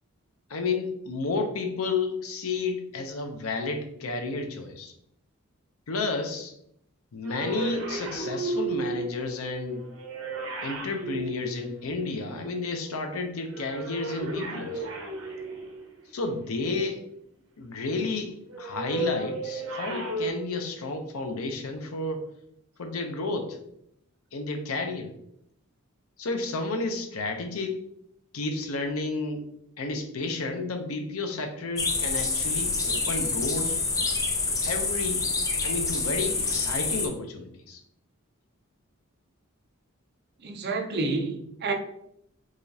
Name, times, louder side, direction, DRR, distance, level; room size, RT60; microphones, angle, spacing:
voice 1, 0.5-4.9 5.9-6.5 7.1-9.8 10.6-14.9 16.1-17.0 17.6-22.3 22.8-23.6 24.3-25.1 26.2-27.8 28.3-29.5 29.8-33.8 34.5-35.2 35.6-37.8, left 3 dB, 85° left, 0.6 m, -31 dB
sound 1, 7.2-12.3 13.5-16.1 18.5-20.3, right 2 dB, 75° right, 0.9 m, -34 dB
sound 2, 31.8-37.1, left 3 dB, 15° left, 0.4 m, -27 dB
voice 2, 40.4-41.7, right 3 dB, 50° right, 0.5 m, -29 dB
4.9 x 2.4 x 2.7 m
head